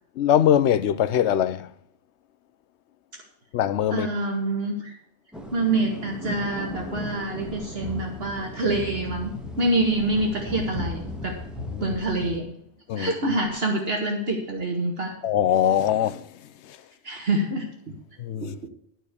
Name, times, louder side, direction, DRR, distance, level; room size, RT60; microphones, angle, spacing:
voice 1, 0.2-1.7 3.5-4.1 11.7-12.0 12.9-13.1 15.2-16.2 16.6-16.8 18.2-18.5, left 10 dB, 85° left, 0.9 m, -22 dB
voice 2, 3.9-5.0 5.5-11.4 11.8-12.6 12.9-15.2 17.0-17.7 18.4-18.7, right 2 dB, 65° right, 1.9 m, -26 dB
sound 1, 5.3-12.4, left 1 dB, ahead, 1.5 m, -36 dB
13.0 x 4.5 x 8.3 m
omnidirectional pair, 1.1 m